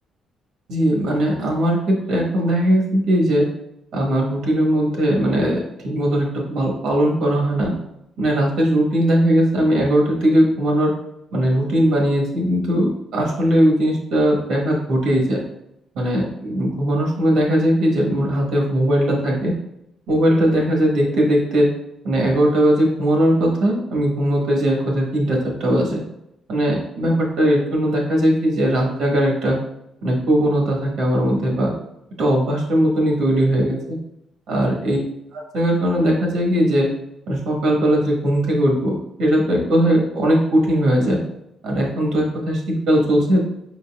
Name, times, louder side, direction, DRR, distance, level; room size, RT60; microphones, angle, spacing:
voice 1, 0.7-3.4 3.9-7.7 8.2-10.9 11.3-15.4 15.9-19.5 20.1-21.7 22.0-26.0 26.5-29.6 30.0-31.7 32.2-33.8 34.5-35.0 35.3-36.9 37.3-41.2 41.6-43.4, equal, 80° right, -1 dB, 1.3 m, -19 dB
5.3 x 3.9 x 2.4 m, 0.83 s
cardioid pair, 140°, 0 cm